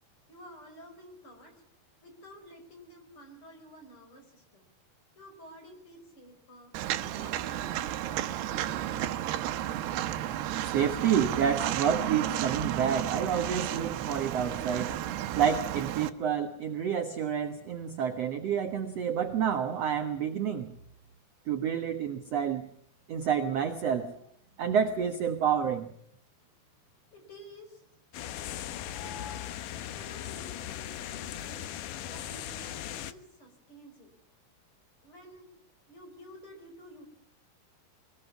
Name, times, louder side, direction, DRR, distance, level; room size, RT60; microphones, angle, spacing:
voice 1, 0.3-1.6 2.0-4.6 5.2-6.7 7.0-9.3 27.1-28.0 28.6-31.7 32.1-34.1 35.0-35.5 35.9-37.1, equal, 35° left, 5 dB, 5.9 m, -52 dB
Walk footsteps, 6.7-16.1, right 12 dB, 85° right, 3.1 m, -32 dB
voice 2, 10.6-15.0 15.4-20.8 21.5-22.7 23.1-24.1 24.6-25.8, right 8 dB, 60° right, 6 dB, 1.7 m, -29 dB
sound 1, 28.1-33.1, left 11 dB, 70° left, 2.2 m, -38 dB
23.5 x 20.5 x 7.2 m, 0.70 s
omnidirectional pair, 4.5 m